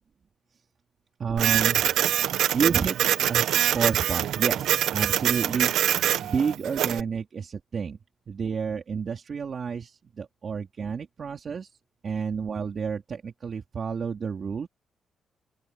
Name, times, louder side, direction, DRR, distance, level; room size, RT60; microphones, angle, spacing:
voice 1, 1.2-1.9 2.5-3.0 3.3-5.7 6.2-8.0 8.3-11.7 12.0-14.7, right 6 dB, 40° right, 3.6 m, -30 dB
Printer, 1.4-7.0, right 11 dB, 90° right, 1.1 m, -24 dB
open air
cardioid pair, 130°, 0 cm